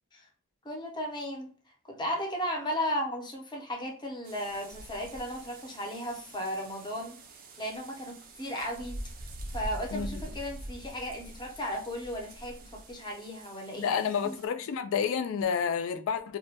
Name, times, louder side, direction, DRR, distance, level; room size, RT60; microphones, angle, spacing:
voice 1, 0.6-1.5 2.0-7.2 7.6-9.0 9.5-14.4, equal, 20° left, 0.6 m, -35 dB
sound 1, 4.2-14.5, right 1 dB, 45° right, 0.4 m, -44 dB
voice 2, 9.9-10.3 13.8-16.4, left 6 dB, 70° left, 0.3 m, -30 dB
2.2 x 2.1 x 2.7 m
head